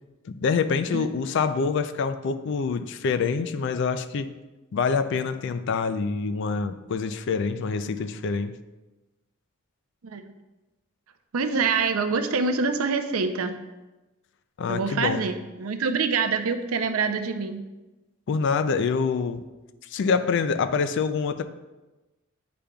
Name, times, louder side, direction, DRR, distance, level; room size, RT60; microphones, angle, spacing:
voice 1, 0.2-4.3 4.7-8.5 14.6-15.2 18.3-19.4 19.9-21.4, left 5 dB, 60° left, 11 dB, 0.4 m, -26 dB
voice 2, 11.3-13.6 14.7-17.6, right 4 dB, 80° right, 8 dB, 0.5 m, -25 dB
8.6 x 5.0 x 2.3 m, 1.1 s
head